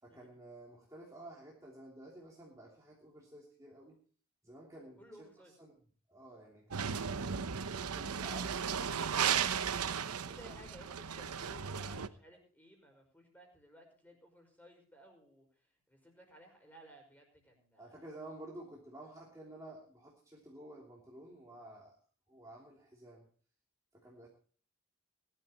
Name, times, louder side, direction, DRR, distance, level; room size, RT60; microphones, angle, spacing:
voice 1, 0.0-4.0 4.4-5.3 5.6-5.7 6.1-7.1 7.6-9.4 9.7-10.7 17.8-22.0 22.3-23.3 23.9-24.3, right 1 dB, 15° right, -4 dB, 3.0 m, -52 dB
voice 2, 5.0-5.5 10.1-18.1, equal, 5° left, 2 dB, 5.3 m, -58 dB
sound 1, 6.7-12.1, right 7 dB, 90° right, 0.9 m, -35 dB
21.0 x 12.5 x 3.0 m, 0.43 s
head